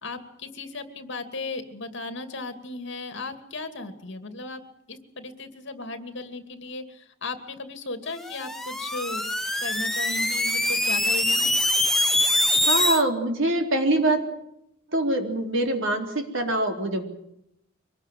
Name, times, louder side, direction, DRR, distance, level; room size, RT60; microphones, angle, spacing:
voice 1, 0.0-4.6 4.9-9.2 9.6-11.5, left 3 dB, 60° left, 8 dB, 2.6 m, -36 dB
sound 1, 8.2-13.0, left 1 dB, ahead, 1.3 m, -24 dB
voice 2, 12.7-14.2 14.9-17.0, right 1 dB, 70° right, 4 dB, 4.0 m, -24 dB
24.5 x 19.5 x 7.6 m, 0.79 s
head